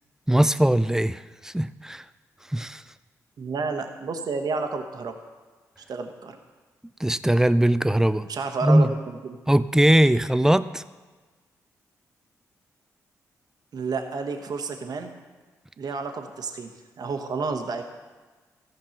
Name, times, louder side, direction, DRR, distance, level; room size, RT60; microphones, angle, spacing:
voice 1, 0.3-2.0 2.5-2.8 7.0-8.3 8.6-8.9 9.5-10.8, right 1 dB, 5° right, 14 dB, 0.5 m, -20 dB
voice 2, 3.4-5.2 5.9-6.4 8.3-9.4 13.7-15.1 15.8-17.8, right 4 dB, 60° right, 6 dB, 1.1 m, -30 dB
14.0 x 5.3 x 5.8 m, 1.3 s
hypercardioid pair, 40°, 8 cm